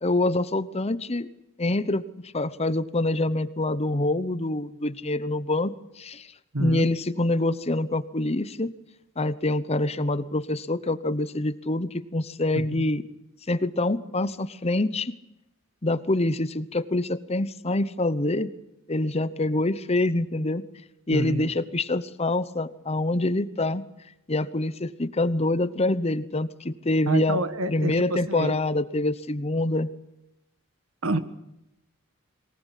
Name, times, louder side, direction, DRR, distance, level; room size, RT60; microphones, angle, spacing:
voice 1, 0.0-1.3 1.6-2.0 2.3-6.3 6.6-8.7 9.2-13.0 13.5-15.1 15.8-18.5 18.9-20.6 21.1-23.8 24.3-27.4 27.7-29.9, left 2 dB, 30° left, 14 dB, 0.9 m, -25 dB
voice 2, 6.5-6.9 12.7-12.8 21.1-21.5 27.1-28.5 31.0-31.2, right 2 dB, 75° right, 11 dB, 1.7 m, -28 dB
22.5 x 19.5 x 8.4 m, 0.88 s
head